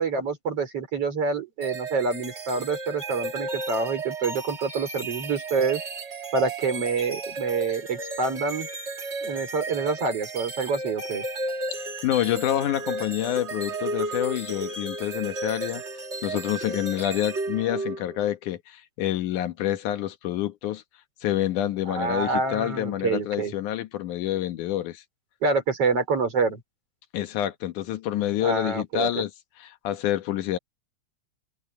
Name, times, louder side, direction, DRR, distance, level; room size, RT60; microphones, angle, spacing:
voice 1, 0.0-5.8 6.3-8.7 9.2-11.2 21.9-23.5 25.4-26.6 28.4-29.2, right 4 dB, 50° right, 5.3 m, -27 dB
sound 1, 1.6-18.3, right 2 dB, 30° right, 1.3 m, -34 dB
voice 2, 11.7-15.8 16.2-20.8 21.2-25.0 27.1-29.3 29.6-30.6, left 12 dB, 90° left, 2.8 m, -27 dB
omnidirectional pair, 3.4 m